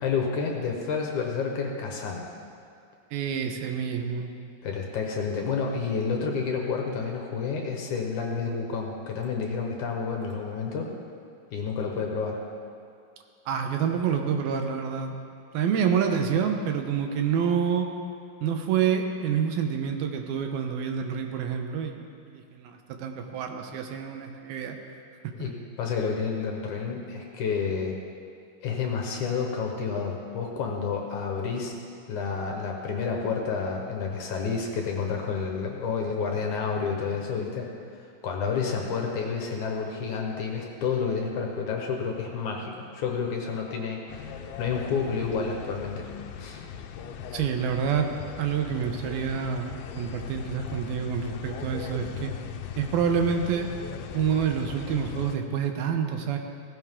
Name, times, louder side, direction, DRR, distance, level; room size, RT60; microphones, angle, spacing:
voice 1, 0.0-2.2 4.6-10.9 11.5-12.4 25.4-28.0 28.6-31.8 32.1-37.7 38.2-46.1 46.4-46.6, left 5 dB, 65° left, 1 dB, 2.3 m, -30 dB
voice 2, 3.1-4.3 13.5-15.2 15.5-17.9 18.4-22.0 22.3-24.8 25.2-25.5 47.3-48.1 48.4-52.3 52.8-53.7 54.1-56.4, right 7 dB, 80° right, 4 dB, 2.8 m, -27 dB
sound 1, 44.1-55.4, left 8 dB, 85° left, 2.6 m, -39 dB
17.0 x 15.5 x 3.7 m, 2.4 s
omnidirectional pair, 4.3 m